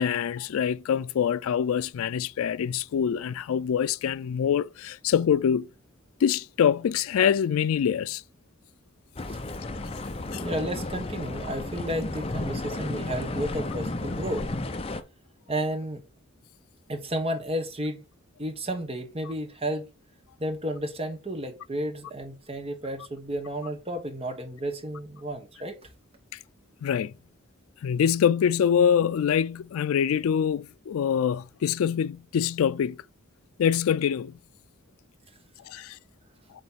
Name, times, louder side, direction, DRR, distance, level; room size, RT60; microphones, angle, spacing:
voice 1, 0.0-5.7 6.2-8.2 10.3-10.4 26.8-27.1 27.8-33.0 33.6-34.3 35.7-36.0, left 8 dB, 85° left, 0.3 m, -25 dB
sound 1, 9.2-15.0, left 2 dB, 30° left, 0.7 m, -33 dB
voice 2, 10.4-14.5 15.5-16.0 16.9-18.0 18.4-19.9 20.4-25.9, right 1 dB, 30° right, 1.2 m, -32 dB
8.5 x 3.2 x 4.0 m
head